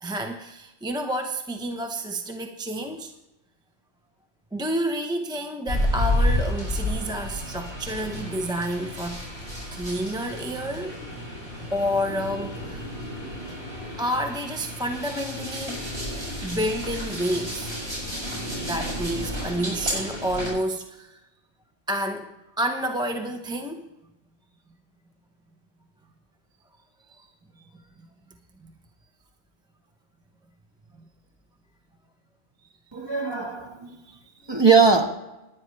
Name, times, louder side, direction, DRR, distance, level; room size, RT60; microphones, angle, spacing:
voice 1, 0.0-3.1 4.5-9.2 9.7-11.0 11.7-12.9 14.0-15.9 16.4-17.8 18.6-21.2 21.9-22.3 22.6-23.9 27.1-27.3 27.6-27.7 34.1-34.5, equal, 5° right, 4 dB, 0.6 m, -29 dB
sound 1, 5.7-20.5, left 1 dB, 55° right, 6.2 m, -31 dB
voice 2, 32.9-34.0 34.5-35.1, right 4 dB, 20° right, 2 dB, 1.3 m, -20 dB
18.5 x 10.5 x 3.2 m, 0.95 s
omnidirectional pair, 1.3 m